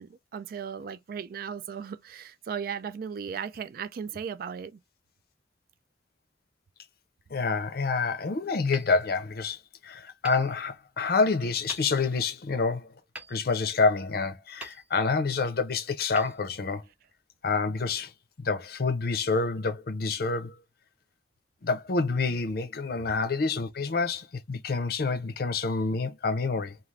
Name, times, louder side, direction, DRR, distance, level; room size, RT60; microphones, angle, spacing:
voice 1, 0.0-4.8, right 7 dB, 50° right, 0.3 m, -36 dB
voice 2, 7.3-9.6 9.8-12.9 13.3-16.8 17.4-18.1 18.4-20.6 21.6-26.8, left 4 dB, 55° left, 0.5 m, -27 dB
Hammer, 8.7-9.7 10.2-11.1 11.7-12.3 13.1-14.1 14.6-15.3 16.1-17.1, right 1 dB, 5° right, 0.6 m, -48 dB
2.4 x 2.4 x 3.2 m
head